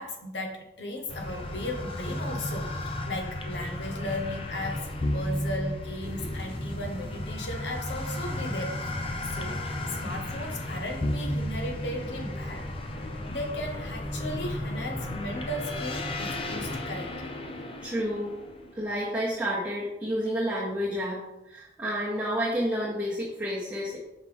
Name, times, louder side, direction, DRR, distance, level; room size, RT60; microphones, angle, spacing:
voice 1, 0.0-9.0 9.2-9.6 10.0-12.7 13.0-17.4, left 1 dB, 85° left, 3 dB, 1.1 m, -36 dB
sound 1, 1.1-19.0, left 1 dB, 30° left, 0.6 m, -34 dB
voice 2, 17.8-18.3 18.7-24.0, equal, 5° right, -9 dB, 1.2 m, -30 dB
5.6 x 4.9 x 3.5 m, 0.94 s
head